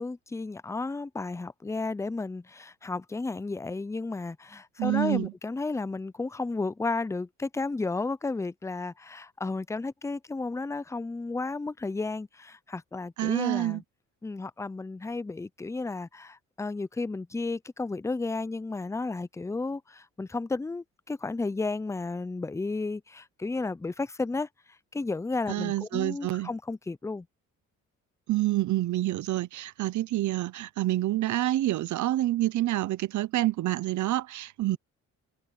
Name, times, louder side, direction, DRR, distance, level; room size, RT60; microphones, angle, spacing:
voice 1, 0.0-13.8 14.2-24.5 24.9-27.3, left 3 dB, 10° left, 0.5 m, -33 dB
voice 2, 4.8-5.3 13.2-13.8 25.5-26.5 28.3-34.8, right 16 dB, 75° right, 0.9 m, -27 dB
cardioid pair, 90°, 30 cm